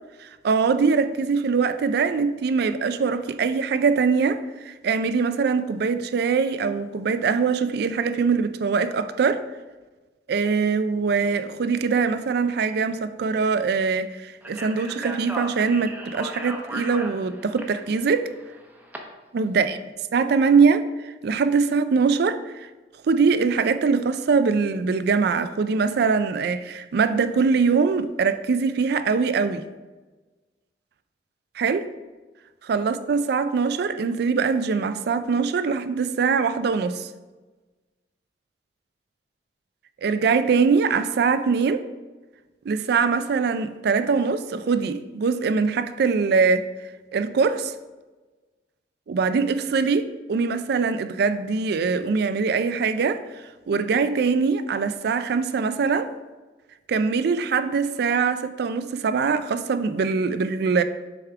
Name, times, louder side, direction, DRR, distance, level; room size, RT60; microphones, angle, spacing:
voice 1, 0.2-9.4 10.3-18.2 19.3-19.8 20.1-22.7 23.1-29.6 31.6-31.8 32.6-37.1 40.0-41.9 42.7-46.7 47.1-47.7 49.1-53.2 53.7-56.1 56.9-60.8, right 5 dB, 65° right, 0.4 m, -22 dB
Speech, 14.4-19.0, right 1 dB, 10° right, 0.7 m, -36 dB
6.9 x 3.6 x 4.5 m
head